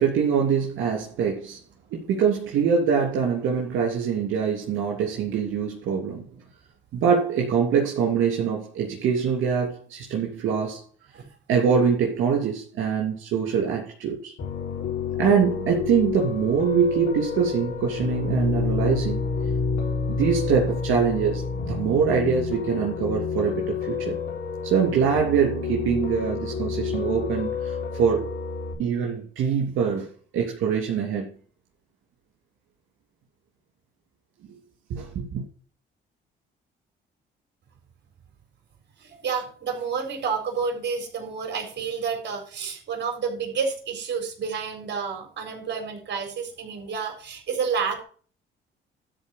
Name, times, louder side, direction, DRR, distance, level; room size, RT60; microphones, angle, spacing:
voice 1, 0.0-1.6 1.9-6.2 6.9-10.8 11.5-14.3 15.2-19.2 20.1-24.2 24.6-28.3 28.8-31.3 34.9-35.4, right 6 dB, 80° right, 3.1 m, -24 dB
Piano, 14.4-28.7, left 5 dB, 80° left, 4.6 m, -29 dB
voice 2, 39.0-48.0, right 6 dB, 60° right, 4.3 m, -30 dB
12.5 x 4.5 x 6.6 m
cardioid pair, 90°, 20 cm